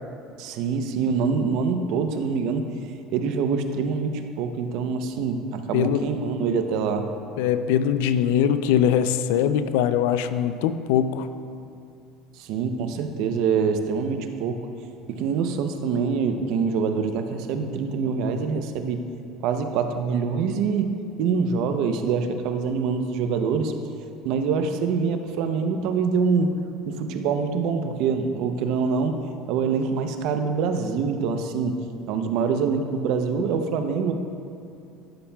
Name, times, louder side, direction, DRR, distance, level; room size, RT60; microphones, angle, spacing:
voice 1, 0.4-2.7 3.1-7.1 12.4-14.7 15.1-19.0 19.4-20.9 21.2-23.7 24.2-26.5 26.9-29.2 29.5-31.8 32.1-34.1, right 5 dB, 70° right, 7 dB, 0.6 m, -25 dB
voice 2, 7.4-11.3, left 9 dB, 85° left, 11 dB, 0.4 m, -22 dB
12.5 x 7.2 x 2.3 m, 2.6 s
cardioid pair, 125°, 0 cm